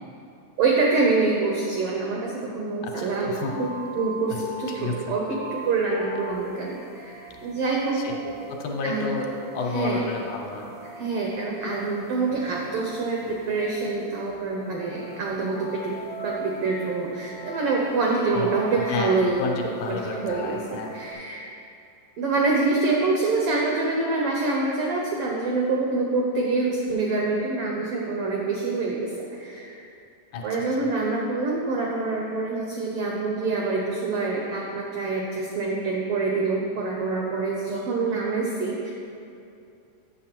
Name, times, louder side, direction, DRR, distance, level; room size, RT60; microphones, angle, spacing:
voice 1, 0.6-8.0 8.8-9.1 9.7-10.0 10.8-15.9 16.2-19.4 19.9-21.5 22.2-29.8 30.4-38.9, right 3 dB, 90° right, -2 dB, 1.2 m, -26 dB
voice 2, 2.8-3.5 4.8-5.1 7.9-10.7 18.3-20.9 30.3-30.4, left 3 dB, 75° left, 1 dB, 2.1 m, -31 dB
sound 1, 3.3-21.1, right 1 dB, 55° right, 0.3 m, -41 dB
8.2 x 6.6 x 4.4 m, 2.6 s
omnidirectional pair, 3.7 m